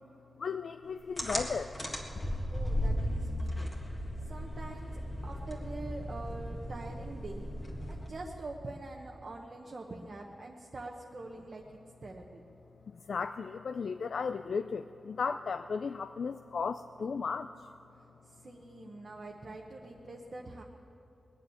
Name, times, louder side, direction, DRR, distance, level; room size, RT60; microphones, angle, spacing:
voice 1, 0.4-1.7 13.1-17.5, left 5 dB, 65° left, 10 dB, 0.3 m, -35 dB
sound 1, 1.2-8.3, equal, 20° left, 1.7 m, -36 dB
voice 2, 2.5-3.7 4.2-4.9 5.2-7.5 7.9-12.4 18.3-20.6, right 2 dB, 45° right, 0 dB, 1.0 m, -45 dB
20.0 x 6.9 x 9.8 m, 2.9 s
wide cardioid pair, 140°, 0 cm